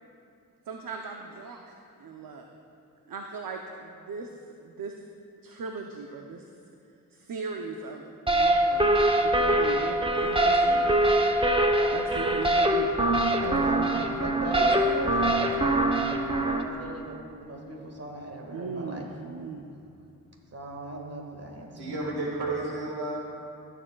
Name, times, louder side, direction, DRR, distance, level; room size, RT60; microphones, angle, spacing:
voice 1, 0.7-2.5 3.1-4.3 4.6-5.0 5.4-6.5 7.1-11.1 11.9-12.9 18.5-19.8, right 4 dB, 60° right, 3 dB, 0.7 m, -38 dB
sound 1, 8.3-16.6, right 1 dB, 15° right, 0.9 m, -23 dB
voice 2, 13.3-15.9 16.4-19.1 20.5-22.0, right 2 dB, 40° right, 1 dB, 1.7 m, -39 dB
voice 3, 21.8-23.3, right 2 dB, 90° right, -3 dB, 1.7 m, -32 dB
15.5 x 7.5 x 2.3 m, 2.5 s
cardioid pair, 50°, 38 cm